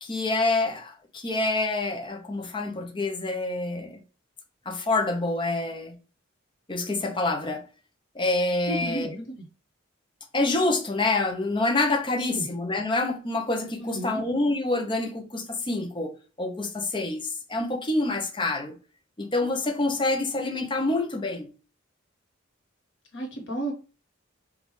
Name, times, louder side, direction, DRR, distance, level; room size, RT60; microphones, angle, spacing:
voice 1, 0.0-4.0 4.7-5.9 6.7-7.6 8.1-9.1 10.3-16.1 16.4-18.7 19.2-21.5, left 2 dB, 25° left, 0.7 m, -27 dB
voice 2, 8.7-9.5 12.3-12.4 13.9-14.2 23.1-23.7, right 1 dB, 60° left, 1.4 m, -32 dB
5.3 x 2.5 x 3.1 m
head